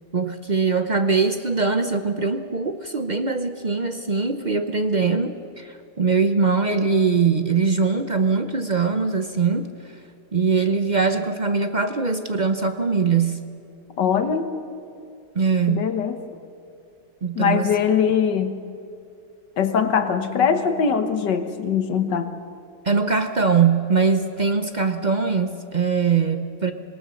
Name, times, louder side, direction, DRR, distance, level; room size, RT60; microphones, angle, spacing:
voice 1, 0.1-9.7 10.3-13.4 15.3-15.9 17.2-17.7 22.8-26.7, right 5 dB, 45° right, 8 dB, 0.6 m, -22 dB
voice 2, 14.0-14.5 15.7-16.2 17.4-18.6 19.6-22.3, left 7 dB, 85° left, 8 dB, 1.9 m, -22 dB
26.0 x 18.5 x 6.4 m, 2.5 s
omnidirectional pair, 1.8 m